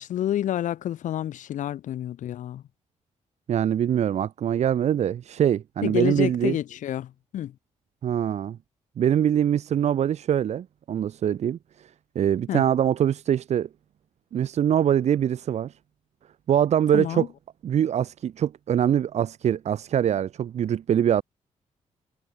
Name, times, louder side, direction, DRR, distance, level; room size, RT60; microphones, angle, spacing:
voice 1, 0.0-2.6 5.8-7.5 12.5-12.6 16.9-17.3, left 11 dB, 85° left, 4.9 m, -29 dB
voice 2, 3.5-6.6 8.0-8.6 9.0-11.9 12.1-13.7 14.3-15.7 16.5-17.3 17.6-21.2, right 9 dB, 60° right, 6.9 m, -23 dB
wide cardioid pair, 170°, 13 cm